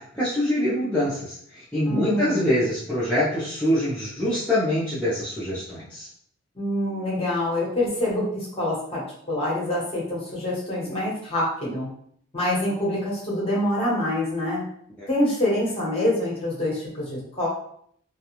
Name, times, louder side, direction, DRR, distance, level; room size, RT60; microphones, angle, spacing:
voice 1, 0.1-6.1 15.0-15.1, left 1 dB, 5° left, -11 dB, 0.5 m, -24 dB
voice 2, 1.8-2.6 6.5-9.0 9.3-11.9 12.3-14.6 15.1-17.5, left 1 dB, 30° left, -5 dB, 1.0 m, -26 dB
2.4 x 2.3 x 2.9 m, 0.65 s
head